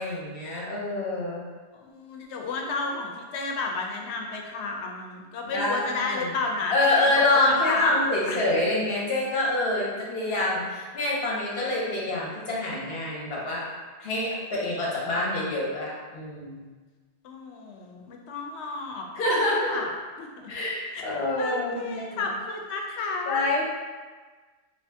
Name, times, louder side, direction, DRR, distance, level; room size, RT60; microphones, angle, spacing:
voice 1, 0.0-1.4 5.5-6.3 6.7-13.7 14.0-16.6 19.1-19.8 20.5-22.2 23.3-23.6, left 2 dB, 65° left, -4 dB, 1.0 m, -26 dB
voice 2, 1.7-8.0 8.3-8.4 17.2-19.9 20.2-20.5 20.9-21.0 21.4-23.4, left 3 dB, 90° left, 1 dB, 0.9 m, -32 dB
2.8 x 2.7 x 3.3 m, 1.4 s
omnidirectional pair, 1.1 m